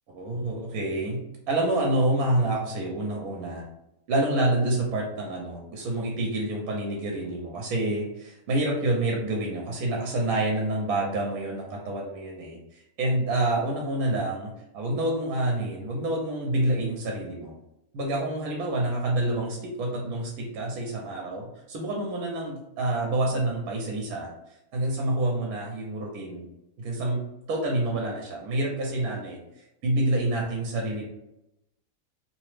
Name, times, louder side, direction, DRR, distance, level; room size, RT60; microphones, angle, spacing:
voice 1, 0.1-1.2 1.5-3.6 4.1-17.5 17.9-24.3 24.7-26.5 26.8-27.2 27.5-29.4 29.8-31.1, right 1 dB, 80° right, -1 dB, 1.1 m, -28 dB
2.9 x 2.0 x 3.1 m, 0.88 s
omnidirectional pair, 1.5 m